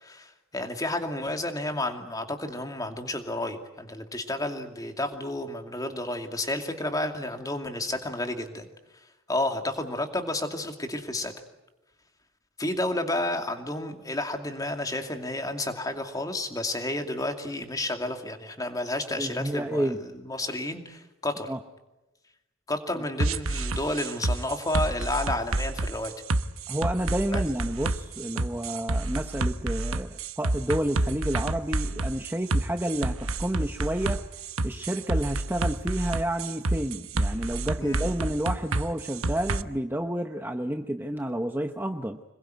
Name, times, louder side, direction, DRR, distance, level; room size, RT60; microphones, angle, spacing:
voice 1, 0.0-8.6 9.3-11.3 12.6-19.9 20.3-21.5 22.7-26.1 27.3-27.4 37.8-38.1, left 1 dB, 15° left, 5 dB, 2.5 m, -31 dB
voice 2, 19.2-20.0 21.5-21.6 26.7-34.2 34.6-42.2, right 1 dB, 10° right, 6 dB, 0.9 m, -30 dB
sound 1, 23.2-39.6, right 2 dB, 80° right, 1.1 m, -29 dB
26.0 x 21.5 x 9.3 m, 1.0 s
head